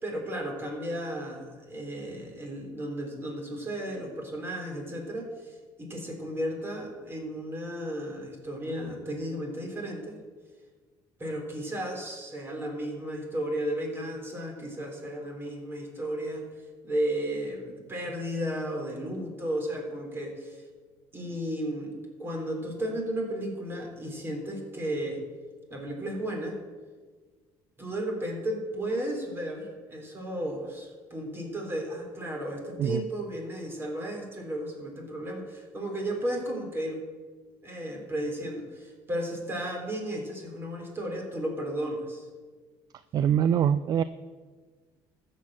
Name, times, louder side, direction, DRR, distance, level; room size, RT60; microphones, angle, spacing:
voice 1, 0.0-10.2 11.2-16.5 16.8-20.6 21.1-21.9 22.2-25.2 25.7-26.6 27.8-37.0 37.6-42.3, right 1 dB, 25° right, 2 dB, 3.8 m, -34 dB
voice 2, 43.1-44.0, right 9 dB, 45° right, 14 dB, 0.4 m, -23 dB
13.5 x 7.7 x 7.5 m, 1.4 s
cardioid pair, 115°, 9 cm